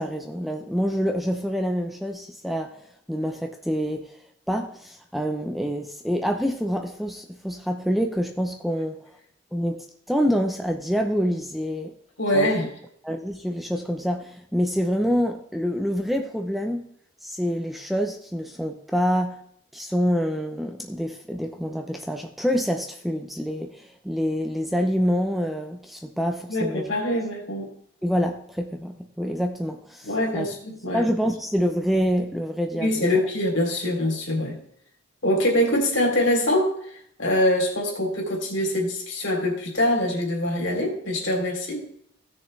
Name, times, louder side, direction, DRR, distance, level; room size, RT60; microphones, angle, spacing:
voice 1, 0.0-2.8 3.1-4.2 4.5-9.0 9.5-11.9 12.3-12.5 13.0-16.9 17.2-19.4 19.7-26.9 28.0-30.5 30.9-33.3, equal, ahead, 3 dB, 0.6 m, -26 dB
voice 2, 12.2-12.7 26.5-27.7 30.0-31.0 32.7-34.6 35.2-36.8 37.2-41.8, left 1 dB, 60° left, 1 dB, 3.2 m, -24 dB
16.5 x 6.7 x 3.3 m, 0.67 s
head